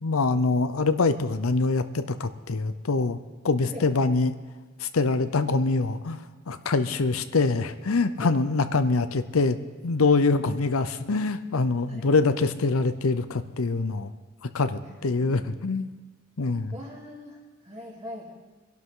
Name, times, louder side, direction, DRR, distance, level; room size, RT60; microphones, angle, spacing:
voice 1, 0.0-3.2 3.4-4.3 4.8-6.2 6.5-9.6 9.8-14.1 14.5-15.9 16.4-16.7, left 3 dB, 80° left, 11 dB, 0.7 m, -24 dB
voice 2, 3.6-3.9 8.2-8.3 10.4-10.5 10.9-11.1 11.9-12.1 14.8-15.5 16.7-18.3, left 1 dB, 30° right, -4 dB, 3.2 m, -43 dB
23.5 x 12.0 x 3.8 m, 1.4 s
head